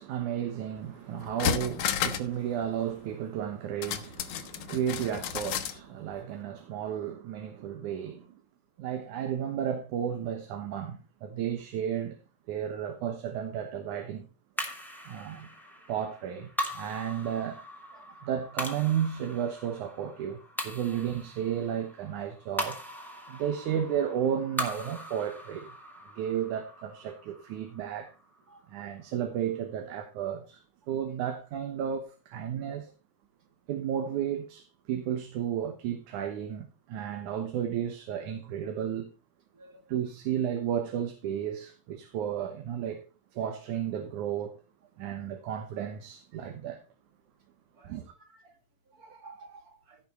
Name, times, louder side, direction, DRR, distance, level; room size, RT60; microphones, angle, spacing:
voice 1, 0.0-8.3 8.8-12.2 12.5-14.3 15.1-15.5 15.9-17.6 18.2-20.4 20.6-22.8 23.3-25.8 26.2-28.1 28.7-30.6 30.9-32.9 33.7-39.1 39.9-43.1 43.3-44.6 45.0-46.8 47.8-48.1, right 9 dB, 85° right, 2.6 m, -33 dB
sound 1, 0.8-0.9 1.2-2.4 2.6-2.7 3.8-5.8 6.1-6.2, left 9 dB, 75° left, 2.3 m, -32 dB
sound 2, 14.6-29.1, left 1 dB, ahead, 1.8 m, -40 dB
voice 2, 49.0-50.0, right 3 dB, 35° right, 2.0 m, -52 dB
15.5 x 6.0 x 4.3 m
omnidirectional pair, 3.4 m